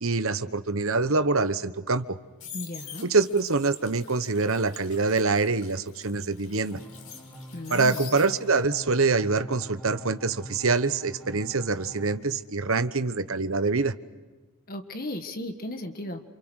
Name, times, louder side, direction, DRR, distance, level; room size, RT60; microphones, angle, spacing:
voice 1, 0.0-2.2 3.0-6.8 7.7-13.9, right 3 dB, 65° right, 12 dB, 1.1 m, -25 dB
sound 1, 2.0-8.7 9.1-12.0 12.2-12.6, left 7 dB, 75° left, 5.5 m, -46 dB
voice 2, 2.5-3.1 7.5-8.1 14.7-16.3, left 1 dB, 40° left, 6 dB, 1.7 m, -35 dB
sound 2, 6.7-12.2, right 1 dB, ahead, 4.4 m, -45 dB
28.5 x 28.0 x 6.5 m, 1.2 s
head